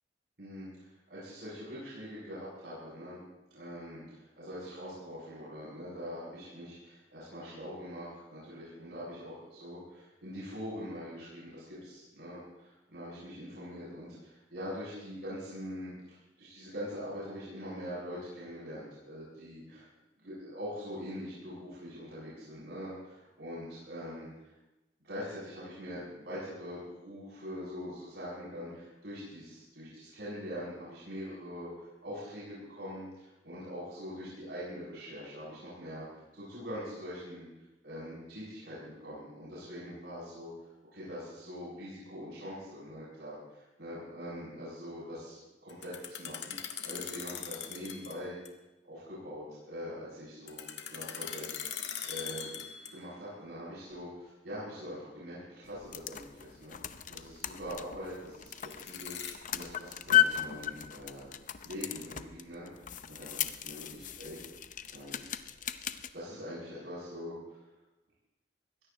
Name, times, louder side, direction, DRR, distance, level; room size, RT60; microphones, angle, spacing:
voice 1, 0.4-3.2 3.5-19.9 20.2-24.5 25.0-37.5 37.8-48.4 48.8-51.8 52.0-52.5 52.9-56.8 57.1-61.3 61.6-62.7 63.1-64.4 64.9-65.2 66.1-67.6, equal, 75° right, -10 dB, 7.7 m, -43 dB
sound 1, 45.7-48.2 48.5-48.6 50.5-53.1 58.5-59.3, left 9 dB, 85° left, 1.6 m, -41 dB
sound 2, 55.6-66.1, left 12 dB, 50° left, 0.7 m, -35 dB
22.5 x 17.0 x 3.0 m, 1.0 s
head